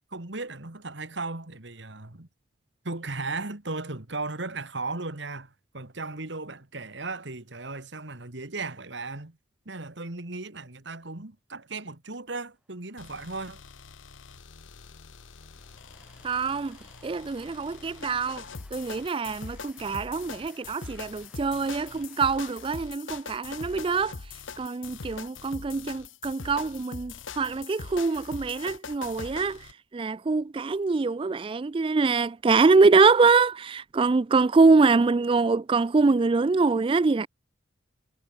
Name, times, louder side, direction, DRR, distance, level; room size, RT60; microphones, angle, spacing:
voice 1, 0.1-2.3 2.8-9.4 9.7-13.6, right 3 dB, 65° right, 2.2 m, -36 dB
Train, 12.5-22.3, right 1 dB, 5° right, 4.3 m, -60 dB
sound 1, 13.0-29.7, left 5 dB, 80° left, 1.1 m, -43 dB
voice 2, 16.2-16.8 17.0-18.4 18.7-24.2 24.6-37.3, right 4 dB, 25° right, 0.3 m, -24 dB
head